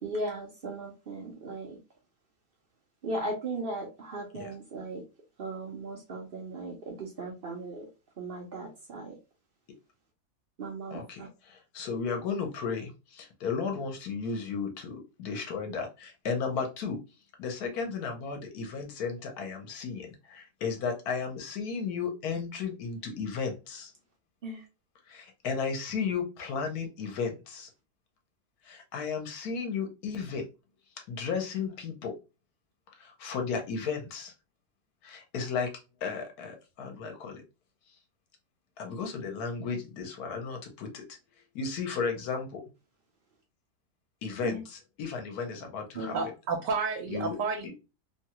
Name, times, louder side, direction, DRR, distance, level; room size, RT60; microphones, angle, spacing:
voice 1, 0.0-1.8 3.0-5.0 5.4-7.9 8.2-9.1 10.6-11.3 24.4-24.6 44.4-44.6 45.9-46.2, right 2 dB, 60° right, 1 dB, 0.6 m, -37 dB
voice 2, 10.9-17.0 17.4-23.9 25.1-27.7 28.6-30.4 31.1-32.1 33.0-34.3 35.0-35.7 36.0-37.4 38.8-41.0 41.5-42.6 44.2-46.1 47.1-47.4 47.6-47.7, left 5 dB, 70° left, 3 dB, 1.1 m, -34 dB
voice 3, 46.1-47.8, right 4 dB, 85° right, 3 dB, 1.3 m, -31 dB
3.0 x 2.3 x 2.8 m, 0.29 s
omnidirectional pair, 1.8 m